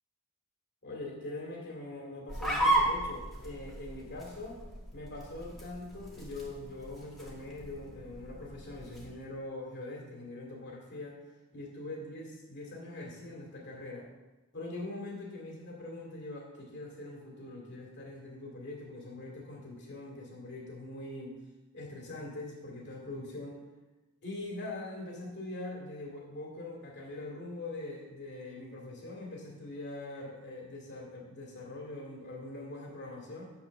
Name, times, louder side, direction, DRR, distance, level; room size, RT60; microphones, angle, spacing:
voice 1, 0.8-4.6 4.9-11.2 11.5-14.1 14.5-21.4 21.7-23.6 24.2-33.5, left 2 dB, 50° left, -1 dB, 2.5 m, -43 dB
sound 1, 2.3-9.1, right 1 dB, ahead, 1.8 m, -35 dB
8.3 x 5.9 x 6.5 m, 1.1 s
head